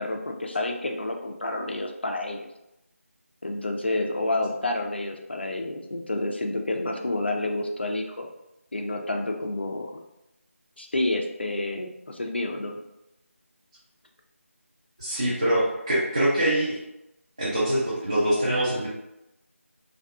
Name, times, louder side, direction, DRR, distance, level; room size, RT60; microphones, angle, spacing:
voice 1, 0.0-2.5 3.4-8.3 8.7-9.9 10.8-12.8, left 2 dB, 50° left, 3 dB, 0.4 m, -29 dB
voice 2, 15.0-16.8 17.4-18.9, right 1 dB, 20° right, -9 dB, 0.3 m, -24 dB
2.6 x 2.3 x 2.2 m, 0.89 s
figure-of-eight pair, 165°, 8 cm